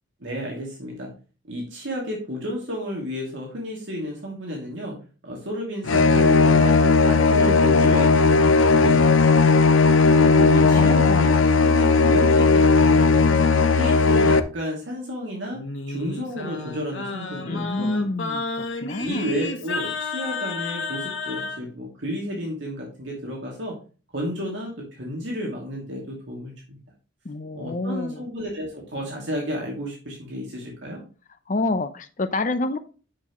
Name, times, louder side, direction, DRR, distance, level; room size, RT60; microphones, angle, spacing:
voice 1, 0.2-1.1 1.5-5.0 5.2-6.8 7.0-9.5 10.2-11.3 11.6-13.4 13.7-15.6 15.9-18.0 19.0-23.8 24.1-26.8 27.5-31.0, equal, 65° right, -2 dB, 2.7 m, -32 dB
sound 1, 5.9-14.4, left 4 dB, 80° left, 0.7 m, -16 dB
voice 2, 10.5-11.5 17.4-19.3 27.2-28.2 31.5-32.8, left 2 dB, 40° left, 11 dB, 0.8 m, -28 dB
Singing, 15.5-21.6, left 3 dB, 65° left, 1.4 m, -31 dB
9.6 x 6.0 x 3.1 m, 0.35 s
head